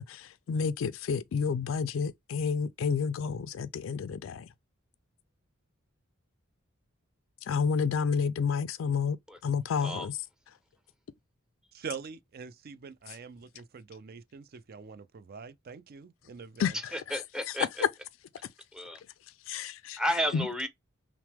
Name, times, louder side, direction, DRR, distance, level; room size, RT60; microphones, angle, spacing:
voice 1, 0.0-4.5 7.5-9.2 9.4-10.2 16.6-16.7 19.5-20.0 20.3-20.5, left 6 dB, 75° left, 0.3 m, -30 dB
voice 2, 11.7-16.8, right 6 dB, 50° right, 0.4 m, -44 dB
voice 3, 16.9-17.7 18.7-19.0 20.0-20.7, equal, 5° right, 0.6 m, -31 dB
5.9 x 2.0 x 3.4 m
head